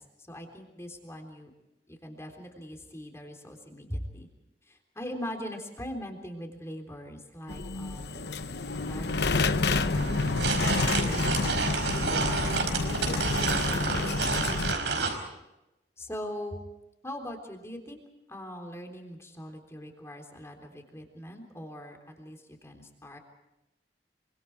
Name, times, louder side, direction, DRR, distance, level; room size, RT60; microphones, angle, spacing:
voice 1, 0.0-1.5 1.9-4.3 4.6-8.3 8.8-15.3 16.0-16.6 17.0-18.0 18.3-23.2, equal, 15° left, 3 dB, 3.6 m, -41 dB
sound 1, 7.5-14.7, left 3 dB, 70° left, 1.0 m, -29 dB
sound 2, 10.0-15.2, right 4 dB, 85° right, 4.9 m, -29 dB
26.5 x 25.0 x 4.7 m, 0.95 s
head